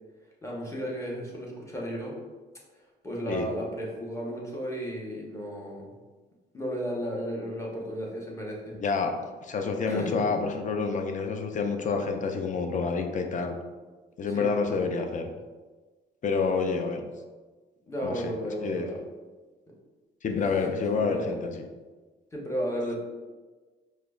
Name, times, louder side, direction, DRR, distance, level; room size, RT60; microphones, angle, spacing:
voice 1, 0.4-2.2 3.0-5.9 6.5-8.7 9.9-10.3 14.3-14.5 17.9-19.0 20.9-21.3 22.3-23.0, equal, 15° left, -3 dB, 0.9 m, -34 dB
voice 2, 8.8-13.5 14.2-15.3 16.2-17.1 18.0-18.3 18.6-18.9 20.2-21.6, left 4 dB, 40° left, 5 dB, 0.4 m, -28 dB
4.8 x 2.1 x 2.3 m, 1.3 s
cardioid pair, 90°, 20 cm